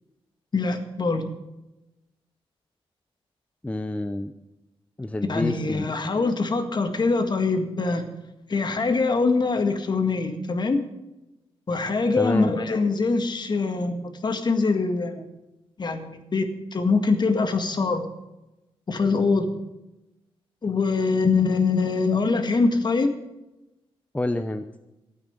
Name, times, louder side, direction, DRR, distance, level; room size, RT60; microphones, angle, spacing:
voice 1, 0.5-1.3 5.3-8.0 8.5-10.8 11.7-15.2 15.8-18.1 18.9-19.6 20.6-23.1, left 4 dB, 45° left, 7 dB, 1.9 m, -23 dB
voice 2, 3.6-4.3 5.0-5.9 12.2-12.6 24.1-24.7, left 1 dB, 15° left, 8 dB, 0.7 m, -28 dB
13.0 x 9.0 x 8.1 m, 0.98 s
cardioid pair, 85°, 10 cm